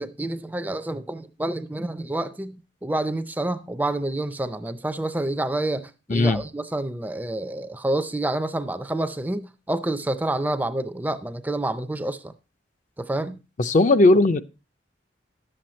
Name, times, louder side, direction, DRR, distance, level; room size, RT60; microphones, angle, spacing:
voice 1, 0.0-12.3 13.0-13.4, right 1 dB, 10° right, 0.4 m, -28 dB
voice 2, 6.1-6.4 13.6-14.4, left 2 dB, 45° left, 0.5 m, -17 dB
11.0 x 7.8 x 4.2 m
head